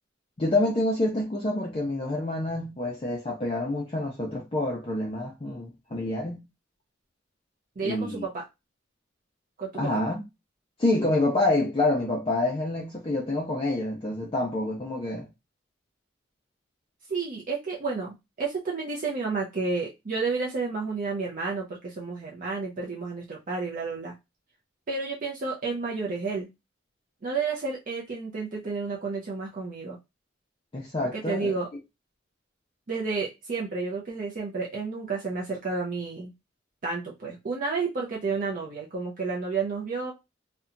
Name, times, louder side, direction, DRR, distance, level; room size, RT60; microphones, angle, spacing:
voice 1, 0.4-6.4 7.8-8.2 9.7-10.2 10.8-15.3 30.7-31.5, left 2 dB, 30° left, 0.4 m, -27 dB
voice 2, 7.8-8.4 9.6-9.9 17.1-24.1 24.9-26.5 27.2-30.0 31.1-31.7 32.9-36.3 36.8-40.1, right 4 dB, 45° right, 0.5 m, -31 dB
2.7 x 2.1 x 2.4 m
head